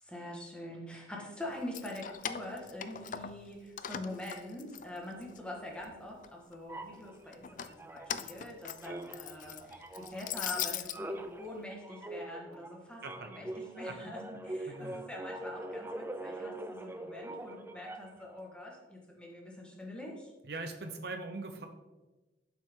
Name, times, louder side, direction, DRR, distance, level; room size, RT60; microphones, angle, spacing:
voice 1, 0.0-20.3, left 1 dB, 5° left, -2 dB, 1.7 m, -44 dB
Keys jangling, 1.6-3.5 3.8-5.4 5.8-6.6 7.3-11.0, left 9 dB, 45° left, 0.4 m, -40 dB
sound 1, 6.7-8.5 8.8-18.3, right 1 dB, 10° right, 0.5 m, -43 dB
voice 2, 14.7-15.0 20.4-21.7, right 3 dB, 60° right, 6 dB, 0.8 m, -41 dB
11.5 x 6.1 x 3.8 m, 1.1 s
head